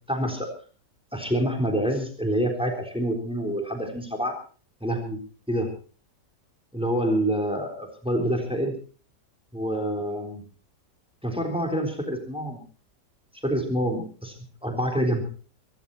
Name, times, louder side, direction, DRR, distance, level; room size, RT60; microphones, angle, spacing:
voice 1, 0.1-0.5 1.1-4.4 4.8-5.8 6.7-8.8 9.5-10.4 11.2-12.6 13.4-14.4 14.6-15.2, equal, 5° right, 3 dB, 3.8 m, -27 dB
24.5 x 12.5 x 4.2 m, 0.39 s
omnidirectional pair, 1.8 m